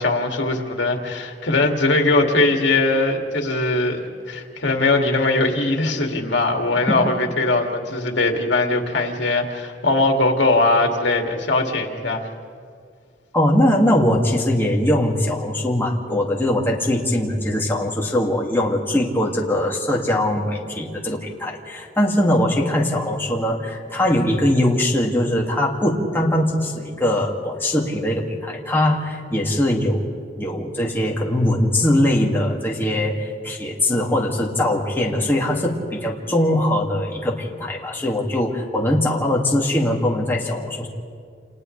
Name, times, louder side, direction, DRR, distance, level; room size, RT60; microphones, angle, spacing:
voice 1, 0.0-12.3, left 2 dB, 80° left, 2 dB, 2.3 m, -20 dB
voice 2, 13.3-30.1 30.4-40.9, left 1 dB, 10° left, -2 dB, 2.2 m, -21 dB
29.0 x 28.5 x 3.3 m, 2.2 s
head